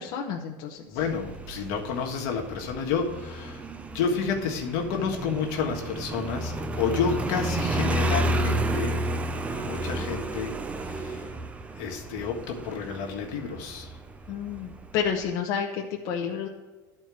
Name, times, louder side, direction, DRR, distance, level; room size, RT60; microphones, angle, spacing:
voice 1, 0.0-0.8 14.3-16.5, left 7 dB, 55° left, 0 dB, 0.9 m, -30 dB
voice 2, 0.9-3.6 3.9-9.0 9.5-10.5 10.8-11.3 11.8-14.0, left 6 dB, 75° left, 1 dB, 1.5 m, -30 dB
Motorcycle, 1.0-15.3, right 1 dB, 15° right, 0.5 m, -32 dB
12.0 x 4.5 x 6.0 m, 1.3 s
cardioid pair, 155°, 9 cm